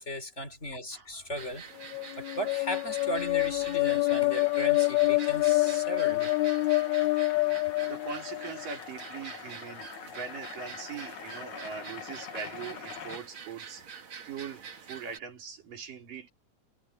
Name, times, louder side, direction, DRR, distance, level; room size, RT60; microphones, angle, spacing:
voice 1, 0.0-1.6 2.2-6.3, equal, 20° left, 4.1 m, -36 dB
voice 2, 0.9-1.3 6.5-6.7 7.4-13.8 14.2-16.3, right 6 dB, 85° right, 5.9 m, -42 dB
sound 1, 1.4-15.2, right 6 dB, 40° right, 2.7 m, -46 dB
sound 2, 1.8-8.7, left 22 dB, 80° left, 1.7 m, -27 dB
sound 3, 3.7-13.2, left 8 dB, 65° left, 3.2 m, -45 dB
omnidirectional pair, 3.7 m